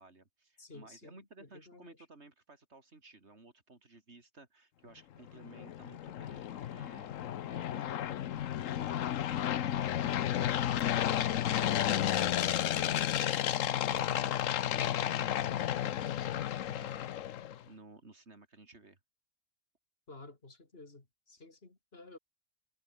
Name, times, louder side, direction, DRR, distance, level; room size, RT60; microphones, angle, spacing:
voice 1, 0.0-8.1 9.2-12.8 13.9-17.1 17.6-19.0, right 3 dB, 60° right, 3.2 m, -56 dB
voice 2, 0.6-2.0 20.1-22.2, left 2 dB, 50° left, 3.1 m, -53 dB
sound 1, 5.3-17.6, left 11 dB, 90° left, 1.2 m, -32 dB
omnidirectional pair, 1.3 m